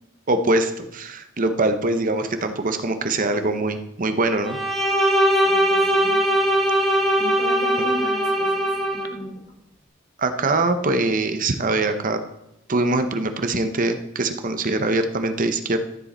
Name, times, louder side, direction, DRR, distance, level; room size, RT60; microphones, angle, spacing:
voice 1, 0.3-4.6 10.2-12.2 12.7-15.8, right 2 dB, 40° right, 8 dB, 0.8 m, -23 dB
Bowed string instrument, 4.4-9.1, right 1 dB, ahead, 1.8 m, -20 dB
voice 2, 5.4-6.2 7.2-8.6 8.9-9.3, equal, 60° left, -1 dB, 4.5 m, -35 dB
13.0 x 7.5 x 4.2 m, 0.83 s
head